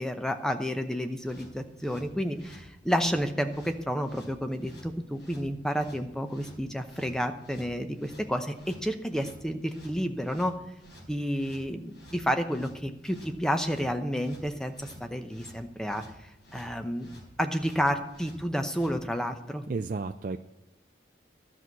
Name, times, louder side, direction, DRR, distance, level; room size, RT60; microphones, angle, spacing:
voice 1, 0.0-10.6 11.1-17.1 17.4-19.7, equal, 5° left, 7 dB, 0.7 m, -30 dB
sound 1, 1.2-19.0, equal, 75° left, 4.1 m, -52 dB
voice 2, 19.7-20.4, right 4 dB, 45° right, 6 dB, 0.4 m, -32 dB
12.5 x 6.1 x 8.2 m, 0.86 s
head